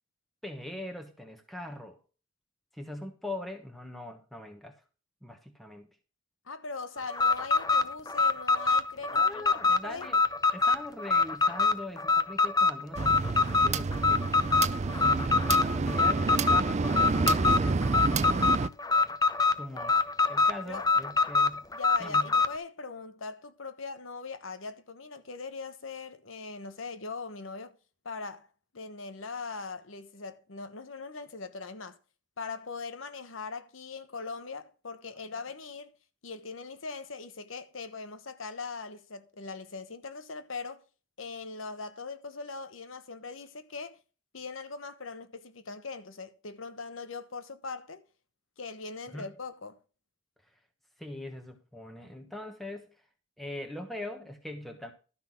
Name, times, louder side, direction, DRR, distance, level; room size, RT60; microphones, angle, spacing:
voice 1, 0.4-2.0 2.7-4.8 5.2-5.9 9.1-10.2 10.5-14.3 14.8-18.5 19.6-21.6 22.0-22.3 49.1-49.3 51.0-52.9 53.4-54.9, left 1 dB, ahead, 1.1 m, -41 dB
voice 2, 6.5-10.1 20.7-20.9 21.7-27.7 28.0-28.5 28.7-32.0 32.4-35.9 36.2-40.8 41.2-44.0 44.3-48.0 48.6-49.8, left 4 dB, 85° left, 1.2 m, -40 dB
Alarm, 7.1-22.6, left 4 dB, 20° left, 0.6 m, -25 dB
sound 1, 13.0-18.7, right 4 dB, 35° right, 0.4 m, -29 dB
12.5 x 5.8 x 5.8 m
head